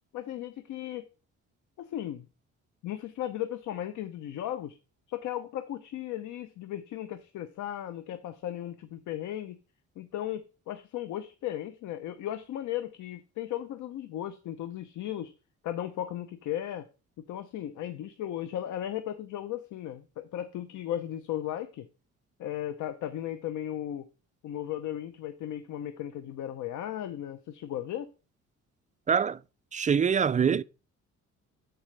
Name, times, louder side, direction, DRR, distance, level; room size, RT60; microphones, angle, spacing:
voice 1, 0.1-1.1 1.8-2.3 2.8-4.8 5.1-9.6 10.0-15.3 15.6-16.9 17.2-21.9 22.4-24.1 24.4-28.1, left 11 dB, 80° left, 0.7 m, -36 dB
voice 2, 29.1-29.4 29.7-30.6, right 7 dB, 25° right, 0.4 m, -24 dB
13.5 x 4.7 x 3.3 m
cardioid pair, 90°, 30 cm